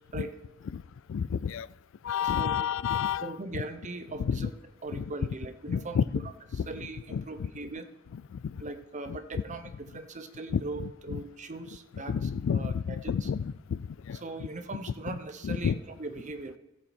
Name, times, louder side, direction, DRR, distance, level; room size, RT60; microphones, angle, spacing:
voice 1, 1.1-1.7 2.0-3.6 4.2-4.5 4.9-5.1 5.7-6.3 6.5-6.7 7.1-7.5 8.1-8.6 10.5-11.2 11.9-14.2 15.1-15.2 15.4-15.8, left 7 dB, 65° left, 0.3 m, -31 dB
voice 2, 2.2-2.8 3.2-4.5 4.8-6.0 6.7-7.9 8.6-13.3 14.2-16.6, right 2 dB, 35° right, 0.8 m, -40 dB
14.5 x 7.3 x 4.3 m
head